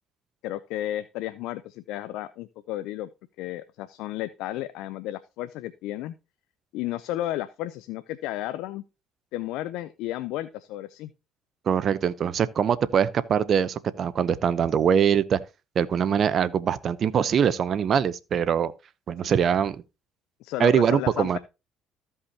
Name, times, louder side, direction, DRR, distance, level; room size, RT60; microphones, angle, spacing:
voice 1, 0.4-3.1 3.4-6.2 6.7-8.8 9.3-11.1 20.4-21.4, left 14 dB, 80° left, 0.4 m, -33 dB
voice 2, 11.7-15.4 15.8-18.7 19.1-19.8 20.6-21.4, right 8 dB, 50° right, 0.7 m, -23 dB
14.5 x 5.5 x 2.8 m
supercardioid pair, 80°, 0 cm